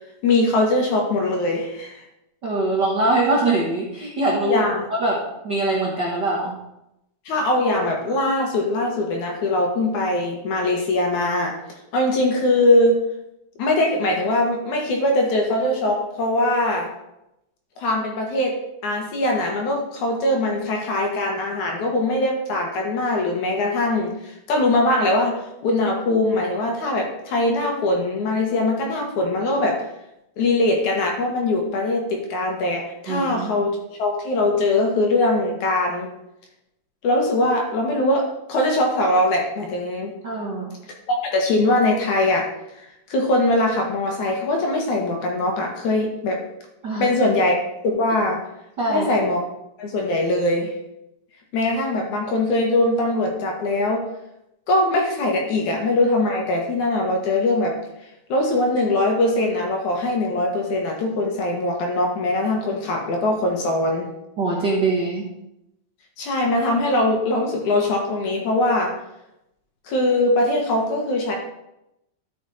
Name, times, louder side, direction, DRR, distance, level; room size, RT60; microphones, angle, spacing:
voice 1, 0.2-2.0 4.5-4.9 7.3-11.6 11.9-13.0 13.6-16.9 17.8-29.8 30.4-36.1 37.0-40.1 41.1-42.5 42.8-46.4 47.0-47.6 47.8-48.4 48.9-49.4 49.8-50.7 51.5-54.0 54.7-57.8 58.3-64.1 66.2-68.9 69.9-71.3, left 2 dB, 60° left, 1 dB, 2.7 m, -21 dB
voice 2, 2.4-4.6 4.9-6.6 33.1-33.6 40.2-40.7 46.8-47.1 48.8-49.1 64.4-65.2, right 2 dB, 50° right, -4 dB, 1.3 m, -23 dB
12.5 x 6.1 x 4.2 m, 0.86 s
omnidirectional pair, 4.0 m